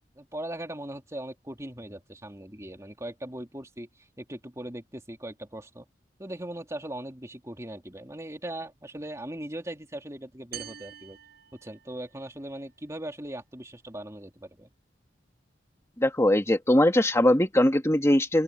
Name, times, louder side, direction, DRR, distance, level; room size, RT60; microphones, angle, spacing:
voice 1, 0.2-5.9 6.2-11.2 11.6-14.7, right 1 dB, 15° right, 3.1 m, -39 dB
sound 1, 10.5-12.3, right 9 dB, 60° right, 6.3 m, -45 dB
voice 2, 16.0-18.4, left 1 dB, 15° left, 1.6 m, -21 dB
open air
head